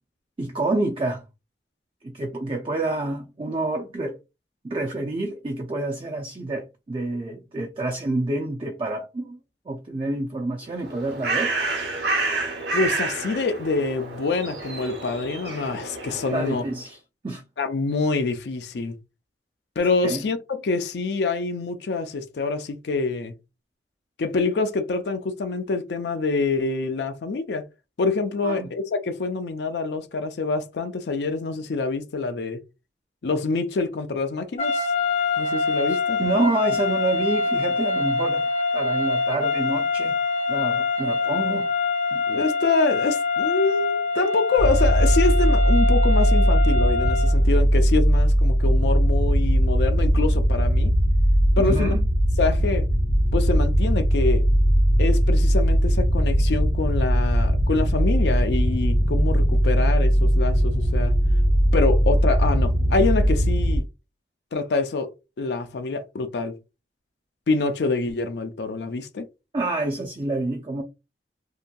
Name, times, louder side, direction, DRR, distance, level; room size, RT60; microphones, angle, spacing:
voice 1, 0.4-1.2 2.0-4.1 4.6-9.4 9.7-11.5 16.3-17.0 17.2-17.4 20.0-20.2 28.4-28.7 36.2-38.4 38.7-40.2 40.5-41.7 42.1-42.2 51.6-52.0 69.5-70.8, right 2 dB, 30° right, 0.3 m, -28 dB
Bird, 10.7-16.8, right 3 dB, 80° right, 0.8 m, -29 dB
voice 2, 12.7-16.6 17.6-18.9 19.8-23.3 24.2-27.7 28.0-32.6 33.2-34.9 35.4-36.2 42.3-50.9 51.6-51.9 52.4-52.9 53.3-54.5 55.0-61.1 61.7-63.9 64.5-65.1 65.4-66.6 67.5-69.3, left 3 dB, 80° left, 0.4 m, -26 dB
sound 1, 34.6-47.4, left 3 dB, 40° left, 0.7 m, -25 dB
sound 2, 44.6-63.8, equal, 60° left, 1.0 m, -19 dB
2.8 x 2.5 x 2.2 m
head